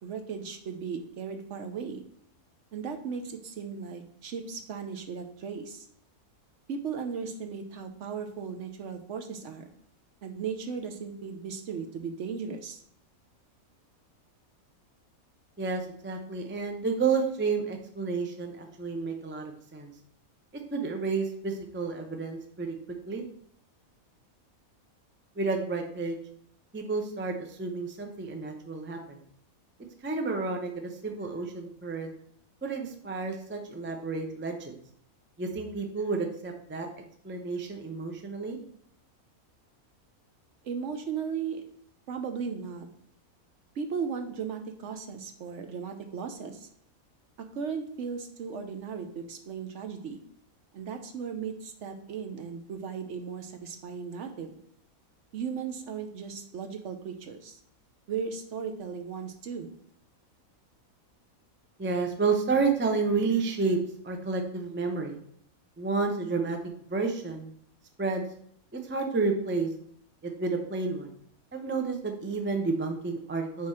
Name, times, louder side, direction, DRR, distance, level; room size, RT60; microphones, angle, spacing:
voice 1, 0.0-2.0 2.7-5.9 6.7-9.6 10.2-12.8 40.6-41.6 42.1-42.9 43.8-46.7 47.5-50.2 50.7-54.6 55.3-57.6 58.1-59.7, right 6 dB, 65° right, 6 dB, 0.9 m, -36 dB
voice 2, 15.6-19.9 20.7-22.7 23.1-23.2 25.4-26.2 26.7-29.2 30.0-32.1 32.6-34.8 35.4-36.9 37.2-38.6 61.8-63.8 64.0-65.2 65.8-66.6 66.9-67.5 68.0-68.3 68.7-69.7 70.2-71.1 71.5-73.7, right 4 dB, 15° right, 4 dB, 0.4 m, -30 dB
5.6 x 4.8 x 4.2 m, 0.64 s
omnidirectional pair, 1.5 m